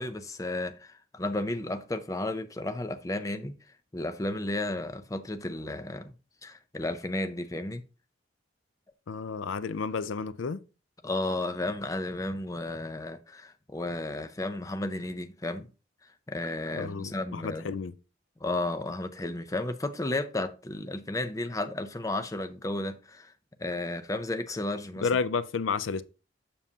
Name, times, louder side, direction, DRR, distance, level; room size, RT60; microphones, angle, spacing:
voice 1, 0.0-3.5 3.9-6.1 6.4-7.8 11.0-15.7 16.0-17.7 18.4-23.3 23.6-25.1, left 2 dB, 15° left, 0.4 m, -33 dB
voice 2, 9.1-10.6 16.7-17.9 25.0-26.0, left 5 dB, 80° left, 0.5 m, -31 dB
7.2 x 6.9 x 2.8 m
head